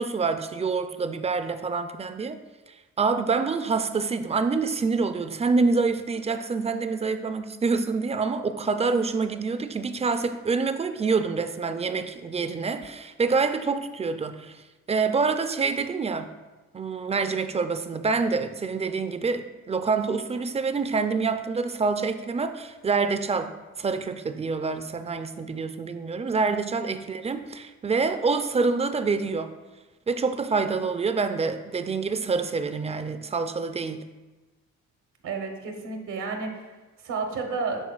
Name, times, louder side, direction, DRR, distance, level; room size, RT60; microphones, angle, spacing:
voice 1, 0.0-2.4 3.0-14.6 14.9-16.3 16.7-23.5 23.8-29.5 30.1-34.0, right 4 dB, 20° right, 9 dB, 0.4 m, -26 dB
voice 2, 35.2-37.9, right 4 dB, 80° right, 3 dB, 1.0 m, -32 dB
11.0 x 3.9 x 2.4 m, 1.2 s
cardioid pair, 90°, 30 cm